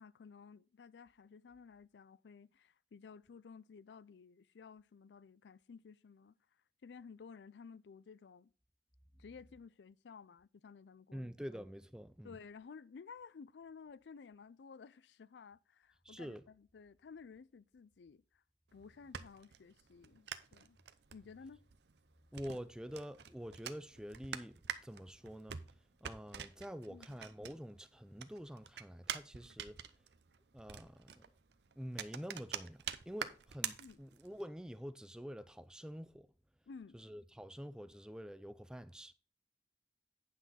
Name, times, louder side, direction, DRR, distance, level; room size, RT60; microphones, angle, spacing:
voice 1, 0.0-6.3 6.8-8.5 9.2-11.3 12.2-18.4 18.7-20.8 21.1-21.6 26.9-27.2 33.8-34.0 36.7-37.0, left 5 dB, 85° left, 0.4 m, -55 dB
voice 2, 11.1-12.4 16.0-16.4 22.3-25.6 26.0-29.8 30.5-31.2 31.8-36.3 36.9-39.1, equal, 5° right, 0.4 m, -47 dB
sound 1, 18.7-27.9 28.2-34.4, right 8 dB, 80° right, 0.7 m, -46 dB
9.4 x 6.0 x 4.0 m
head